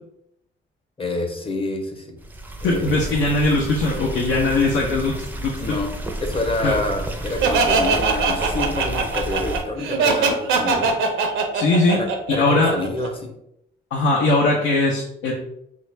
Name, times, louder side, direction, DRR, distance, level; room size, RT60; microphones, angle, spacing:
voice 1, 1.0-2.2 2.6-3.1 5.6-5.9 6.2-10.9 11.9-13.3, left 2 dB, 25° left, 3 dB, 0.7 m, -27 dB
sound 1, 2.2-9.6, right 1 dB, 10° right, 0.5 m, -31 dB
voice 2, 2.6-5.8 6.6-6.8 11.5-12.0 12.3-12.8 13.9-15.3, left 2 dB, 85° left, -2 dB, 0.6 m, -20 dB
Laughter, 7.4-13.1, right 4 dB, 80° right, 0.6 m, -21 dB
3.3 x 2.5 x 3.1 m, 0.77 s
cardioid pair, 90°, 20 cm